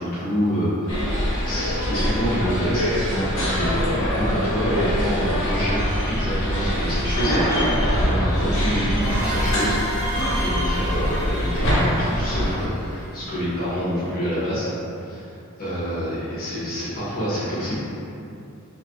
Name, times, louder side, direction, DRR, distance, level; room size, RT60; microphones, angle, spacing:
voice 1, 0.0-5.8 6.1-7.6 7.9-14.7 14.9-15.3 15.6-17.8, equal, 45° left, -11 dB, 1.2 m, -27 dB
sound 1, 0.9-12.5, equal, 60° left, 0.9 m, -23 dB
sound 2, 9.0-13.5, equal, 10° right, 0.7 m, -32 dB
3.4 x 2.7 x 2.5 m, 2.7 s
head